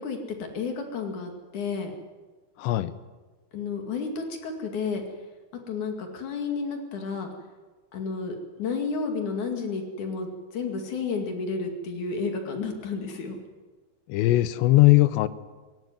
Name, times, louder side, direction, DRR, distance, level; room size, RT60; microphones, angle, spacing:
voice 1, 0.0-1.9 3.5-5.0 5.7-7.3 7.9-13.4, left 4 dB, 50° left, 4 dB, 3.2 m, -31 dB
voice 2, 2.6-2.9 14.1-15.3, left 18 dB, 80° left, 15 dB, 2.9 m, -19 dB
17.5 x 17.0 x 9.3 m, 1.3 s
omnidirectional pair, 5.2 m